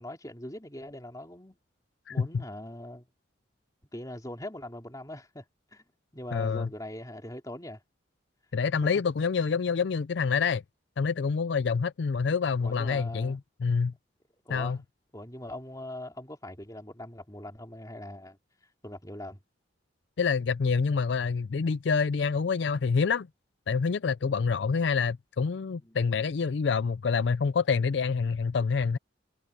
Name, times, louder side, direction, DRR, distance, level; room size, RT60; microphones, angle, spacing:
voice 1, 0.0-1.6 2.1-3.1 3.9-5.4 5.7-5.8 6.1-7.8 8.8-8.9 12.6-13.4 14.5-14.8 15.1-18.4 18.8-19.4 25.8-26.0, left 1 dB, 20° left, 3.6 m, -41 dB
voice 2, 2.1-2.4 6.3-6.7 8.5-10.6 11.0-13.9 14.5-14.8 20.2-23.3 23.7-29.0, left 5 dB, 65° left, 0.4 m, -27 dB
head